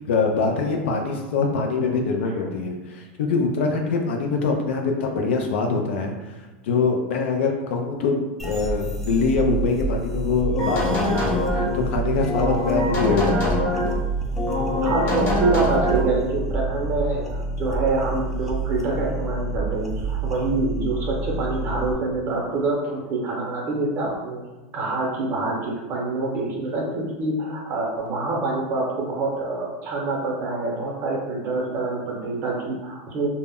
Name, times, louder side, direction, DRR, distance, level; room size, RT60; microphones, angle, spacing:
voice 1, 0.1-6.4 6.6-13.6, left 4 dB, 80° left, 2 dB, 0.4 m, -24 dB
sound 1, 8.4-21.9, right 3 dB, 5° left, 0.3 m, -28 dB
sound 2, 10.5-11.8 12.3-14.0 14.4-16.1, left 1 dB, 35° left, 0.7 m, -24 dB
voice 2, 14.8-24.4 24.7-33.3, right 3 dB, 35° right, -2 dB, 0.7 m, -26 dB
2.0 x 2.0 x 3.5 m, 1.2 s
supercardioid pair, 140°, 6 cm